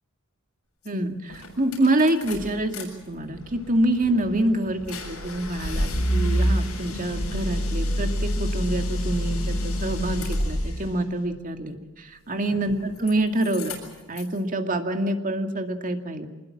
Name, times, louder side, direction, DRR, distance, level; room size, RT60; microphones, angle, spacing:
voice 1, 0.8-13.7 14.1-16.3, right 1 dB, 40° right, 6 dB, 2.3 m, -26 dB
sound 1, 0.9-1.0 1.3-2.8 3.2-10.9 12.4-13.1 13.4-14.4, equal, 80° left, 7.3 m, -28 dB
25.0 x 21.0 x 7.4 m, 1.2 s
head